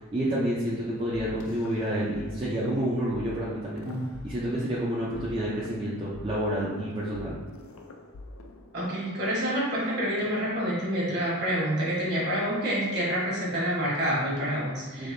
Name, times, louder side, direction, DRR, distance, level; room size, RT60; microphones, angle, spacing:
voice 1, 0.0-3.9 4.2-7.4 15.0-15.1, right 1 dB, 25° right, -7 dB, 0.5 m, -29 dB
sound 1, 1.4-2.2 2.5-2.7 3.1-3.2 3.8-4.8 5.1-9.1, left 2 dB, 70° left, 0.4 m, -46 dB
voice 2, 8.7-15.1, equal, 50° right, -6 dB, 1.4 m, -28 dB
3.8 x 3.4 x 2.6 m, 1.4 s
head